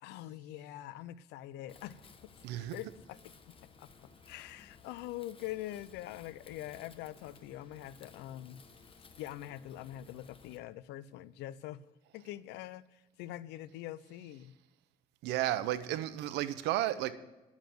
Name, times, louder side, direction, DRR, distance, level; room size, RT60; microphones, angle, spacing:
voice 1, 0.0-2.3 2.7-3.2 3.8-3.9 4.3-8.6 9.2-11.9 12.1-14.6, left 14 dB, 90° left, 0.6 m, -44 dB
Wind, 1.7-10.6, left 5 dB, 30° left, 1.1 m, -58 dB
voice 2, 2.4-2.7 15.2-17.1, right 13 dB, 90° right, 0.8 m, -33 dB
11.0 x 7.2 x 7.7 m
cardioid pair, 110°, 17 cm